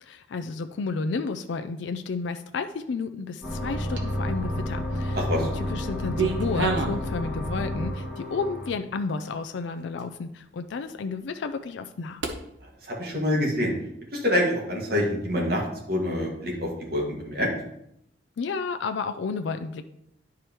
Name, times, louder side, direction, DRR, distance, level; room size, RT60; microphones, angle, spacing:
voice 1, 0.0-12.2 18.4-19.8, left 4 dB, 70° left, 8 dB, 0.4 m, -32 dB
sound 1, 3.4-8.7, left 1 dB, 5° right, 1.7 m, -30 dB
sound 2, 3.9-4.4 4.9-5.6 5.8-7.1 7.5-8.0 8.6-8.7 9.2-9.3 10.0-10.1 12.2-12.4, right 4 dB, 75° right, 0.9 m, -29 dB
voice 2, 5.2-5.5 12.6-13.7 14.1-15.6 15.9-17.5, left 1 dB, 50° right, -2 dB, 1.9 m, -26 dB
10.0 x 4.8 x 3.0 m, 0.77 s
head